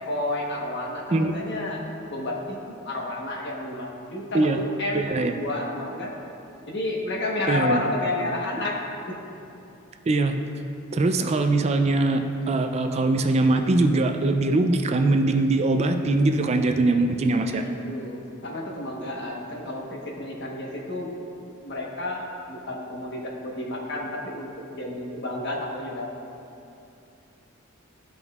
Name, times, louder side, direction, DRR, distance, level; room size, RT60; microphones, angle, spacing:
voice 1, 0.0-2.6 2.8-6.1 6.7-8.8 9.1-9.2 17.4-21.1 21.6-26.1, left 1 dB, 60° left, -1 dB, 1.1 m, -31 dB
voice 2, 4.9-5.4 7.5-7.8 10.1-10.4 10.9-12.2 12.5-17.6, right 2 dB, 30° right, 5 dB, 0.3 m, -22 dB
13.5 x 5.3 x 2.4 m, 2.8 s
head